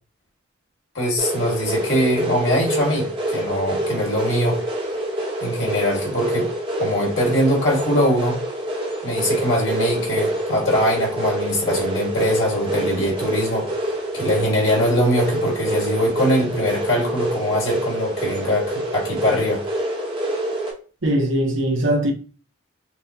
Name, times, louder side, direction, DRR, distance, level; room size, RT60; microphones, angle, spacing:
voice 1, 0.9-4.6 5.4-6.5 6.8-8.4 9.0-19.6, equal, 80° left, 1.9 m, -22 dB
sound 1, 1.2-20.7, right 1 dB, 25° right, 1.0 m, -26 dB
voice 2, 21.0-22.1, right 1 dB, 75° right, 0.8 m, -20 dB
5.8 x 2.2 x 2.8 m
head